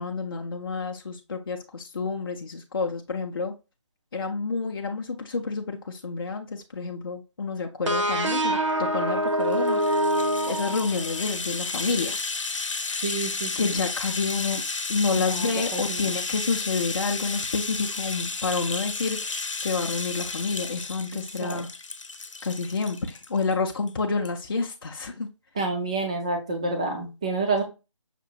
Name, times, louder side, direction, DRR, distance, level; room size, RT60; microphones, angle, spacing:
voice 1, 0.0-3.5 4.1-10.2 10.5-12.2 13.5-14.6 14.9-21.7 22.4-25.3, left 4 dB, 45° left, 0.6 m, -29 dB
sound 1, 7.9-11.4, right 1 dB, 70° right, 1.1 m, -25 dB
Rattle (instrument), 9.4-23.5 23.9-24.0 24.2-24.4, left 4 dB, 75° left, 0.8 m, -33 dB
voice 2, 13.0-13.7 15.1-16.0 21.1-21.6 25.6-27.6, right 3 dB, 10° right, 0.5 m, -29 dB
5.9 x 2.5 x 2.7 m
figure-of-eight pair, 165°, 16 cm